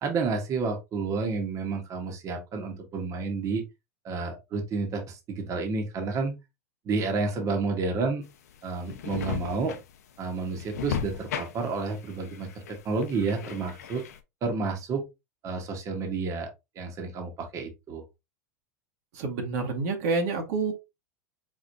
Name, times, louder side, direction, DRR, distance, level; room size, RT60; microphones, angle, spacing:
voice 1, 0.0-3.6 4.0-6.4 6.9-8.2 8.6-9.7 10.2-14.0 14.4-15.0 15.4-16.5 16.8-18.0, right 4 dB, 40° right, 1.6 m, -30 dB
sound 1, 8.2-14.2, left 8 dB, 80° left, 0.8 m, -36 dB
voice 2, 19.1-20.7, right 3 dB, 65° right, 1.6 m, -28 dB
4.8 x 4.1 x 2.7 m
hypercardioid pair, 100°, 9 cm